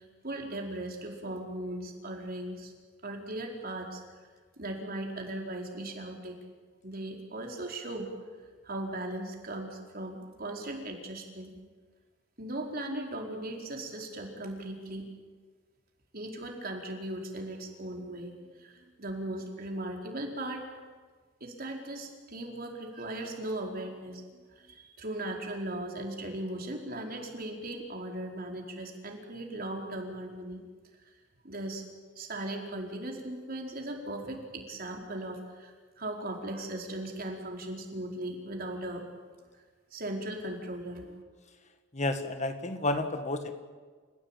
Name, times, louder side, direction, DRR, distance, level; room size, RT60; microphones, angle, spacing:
voice 1, 0.0-2.7 3.0-4.0 4.6-6.4 6.8-8.1 8.6-11.5 12.4-15.1 16.1-20.7 21.4-30.6 31.4-31.8 32.1-39.1 39.9-41.2, right 1 dB, 50° right, 1 dB, 4.7 m, -38 dB
voice 2, 41.9-43.5, left 2 dB, 35° left, 8 dB, 1.7 m, -31 dB
29.5 x 16.0 x 9.2 m, 1.5 s
head